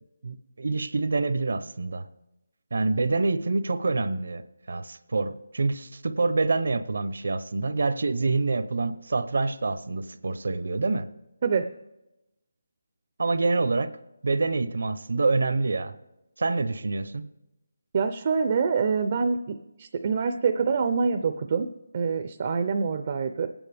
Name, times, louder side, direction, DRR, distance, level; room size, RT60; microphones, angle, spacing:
voice 1, 0.2-2.0 2.7-4.4 4.7-11.1 13.2-13.9 14.2-15.9 16.4-17.3, right 3 dB, 70° right, 12 dB, 0.7 m, -26 dB
voice 2, 17.9-21.7 21.9-23.5, right 5 dB, 30° right, 7 dB, 0.5 m, -25 dB
22.0 x 9.0 x 3.4 m, 0.95 s
hypercardioid pair, 175°, 0 cm